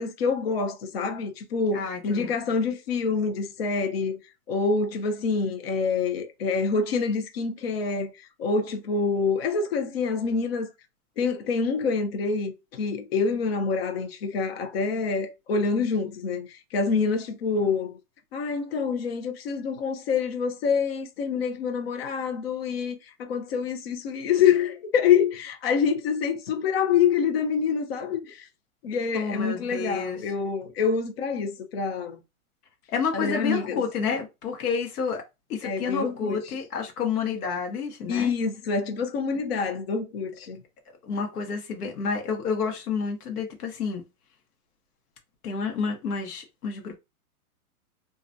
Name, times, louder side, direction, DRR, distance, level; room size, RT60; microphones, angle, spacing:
voice 1, 0.0-4.2 4.5-10.7 11.2-18.0 18.3-28.5 28.8-32.2 33.1-33.8 34.1-34.2 35.6-36.4 38.1-40.6, left 5 dB, 45° left, 0.6 m, -26 dB
voice 2, 1.7-2.3 29.1-30.2 32.9-35.2 35.5-38.3 41.0-44.0 45.4-47.0, left 5 dB, 80° left, 0.9 m, -29 dB
2.4 x 2.1 x 2.5 m
hypercardioid pair, 160°, 45 cm